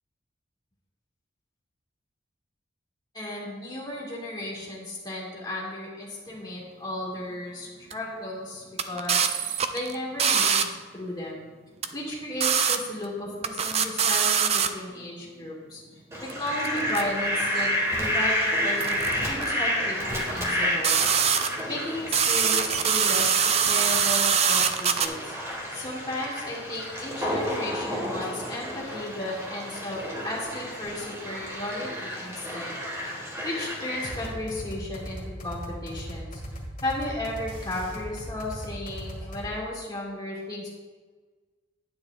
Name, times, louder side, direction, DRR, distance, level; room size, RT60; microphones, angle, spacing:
voice 1, 3.1-11.5 11.9-15.8 16.2-17.7 18.0-21.0 21.7-25.3 25.7-32.7 33.1-36.4 36.8-40.7, left 1 dB, 20° left, -5 dB, 2.0 m, -34 dB
sound 1, 7.9-8.0 8.8-10.7 11.8-11.9 12.4-12.8 13.0-13.1 13.4-14.7 16.3-16.4 16.6-17.0 18.8-19.1 19.4-19.5 20.8-21.6 22.1-25.1, right 7 dB, 35° right, 0.4 m, -23 dB
Fowl, 16.1-34.3, equal, 15° right, 1.6 m, -31 dB
sound 2, 34.0-39.5, equal, 40° left, 2.0 m, -38 dB
9.6 x 8.8 x 2.4 m, 1.4 s
head